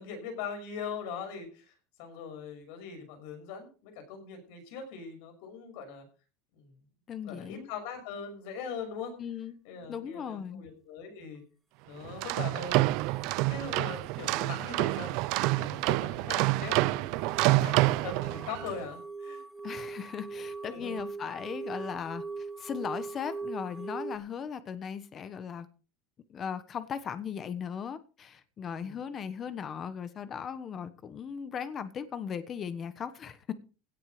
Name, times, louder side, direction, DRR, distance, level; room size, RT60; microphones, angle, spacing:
voice 1, 0.0-1.7 2.0-6.0 6.5-6.8 7.2-9.1 9.6-11.4 11.9-13.2 13.5-15.1 15.6-19.4 20.6-21.0 28.7-29.0, left 5 dB, 65° left, 6.1 m, -41 dB
voice 2, 7.1-7.7 9.2-9.6 9.9-10.7 19.6-25.7 26.3-33.5, left 7 dB, 25° left, 1.2 m, -38 dB
sound 1, 12.0-18.7, right 19 dB, 50° right, 0.5 m, -28 dB
sound 2, 15.8-24.2, right 4 dB, 10° right, 1.2 m, -41 dB
17.0 x 7.6 x 5.1 m
cardioid pair, 175°, 0 cm